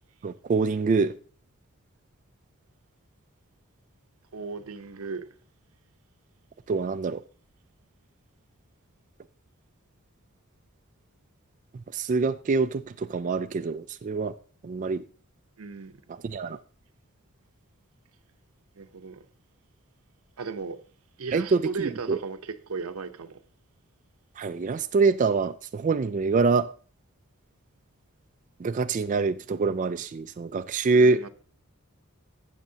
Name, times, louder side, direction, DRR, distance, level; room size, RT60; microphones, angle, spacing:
voice 1, 0.2-1.1 6.7-7.2 11.9-14.3 14.6-15.0 16.1-16.6 21.3-22.2 24.4-26.7 28.6-31.3, right 4 dB, 35° right, 0.3 m, -25 dB
voice 2, 4.3-5.3 15.6-15.9 18.8-19.3 20.4-20.8 21.2-23.4 30.9-31.3, right 4 dB, 85° right, 0.8 m, -36 dB
15.0 x 6.6 x 2.8 m
head